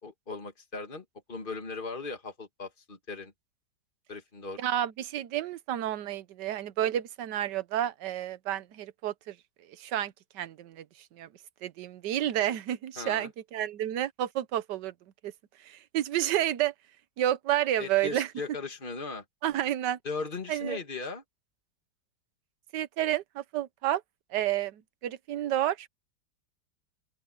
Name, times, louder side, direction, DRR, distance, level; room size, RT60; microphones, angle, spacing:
voice 1, 0.0-3.3 4.1-4.6 13.0-13.3 17.8-19.2 20.0-21.2, left 3 dB, 25° left, 2.6 m, -38 dB
voice 2, 4.6-9.3 9.8-10.8 11.1-11.3 11.6-14.9 15.2-15.3 15.6-16.7 17.2-18.3 19.4-20.0 20.5-20.8 22.7-24.0 24.3-25.9, right 12 dB, 70° right, 1.4 m, -30 dB
open air
omnidirectional pair, 2.0 m